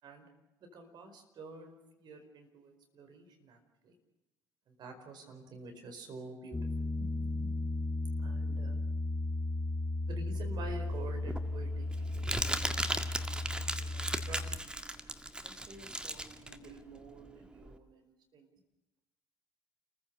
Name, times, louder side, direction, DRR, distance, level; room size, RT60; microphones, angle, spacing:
voice 1, 0.7-3.9 4.7-6.6 7.0-7.6 8.2-8.8 10.1-14.5 15.4-18.5, right 2 dB, 55° right, 5 dB, 4.9 m, -49 dB
Piano, 6.5-14.6, left 2 dB, 10° left, 1.6 m, -35 dB
Crumpling crinkling, 10.7-17.7, right 1 dB, 10° right, 1.9 m, -37 dB
30.0 x 15.5 x 6.8 m, 0.98 s
hypercardioid pair, 55°, 9 cm